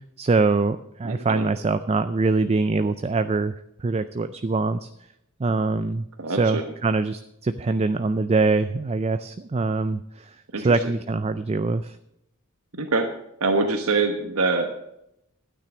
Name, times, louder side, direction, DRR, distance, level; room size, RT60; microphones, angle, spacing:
voice 1, 0.0-3.5 3.8-4.9 5.4-6.0 6.4-10.3 10.6-12.0, right 3 dB, 30° right, 11 dB, 0.4 m, -23 dB
voice 2, 1.0-1.5 6.2-6.7 10.5-10.9 12.7-13.1 13.4-14.7, right 3 dB, 70° right, 5 dB, 1.3 m, -25 dB
12.0 x 9.5 x 6.2 m, 0.80 s
head